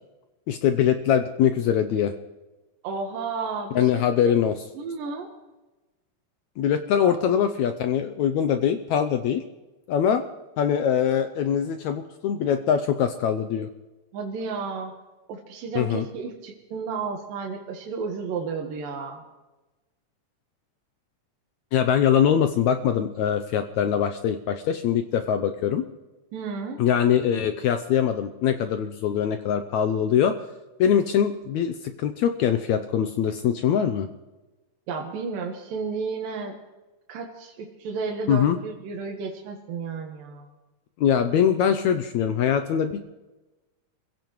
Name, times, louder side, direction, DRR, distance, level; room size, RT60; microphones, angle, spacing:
voice 1, 0.5-2.1 3.8-4.5 6.6-9.4 9.9-10.2 10.6-13.7 15.8-16.1 21.7-25.8 26.8-30.4 30.8-34.1 38.3-38.6 41.0-43.0, left 8 dB, 75° left, 8 dB, 1.7 m, -23 dB
voice 2, 2.8-4.0 4.8-5.3 7.0-7.2 14.1-14.9 15.3-19.2 26.3-26.8 34.9-36.5 37.1-40.5, right 4 dB, 85° right, 1 dB, 3.1 m, -32 dB
27.5 x 16.0 x 3.1 m, 1.1 s
omnidirectional pair, 3.9 m